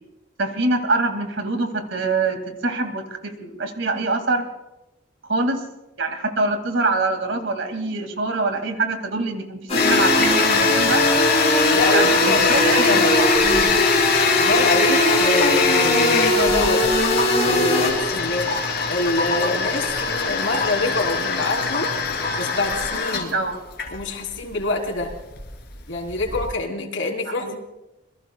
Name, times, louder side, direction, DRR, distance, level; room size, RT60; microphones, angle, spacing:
voice 1, 0.4-4.5 5.3-5.6 6.0-11.0 11.9-13.0 23.3-23.5 27.4-27.5, right 3 dB, 75° right, 6 dB, 2.2 m, -24 dB
Toilet flush, 9.7-26.5, left 5 dB, 55° left, 2.9 m, -23 dB
sound 1, 9.7-17.9, left 1 dB, 35° left, 5.6 m, -20 dB
voice 2, 11.7-13.2 13.4-13.7 14.4-16.8 17.4-18.5 18.9-21.9 22.4-23.3 23.9-25.1 25.9-27.6, left 2 dB, 80° left, 1 dB, 3.5 m, -26 dB
27.0 x 22.0 x 2.3 m, 0.95 s
head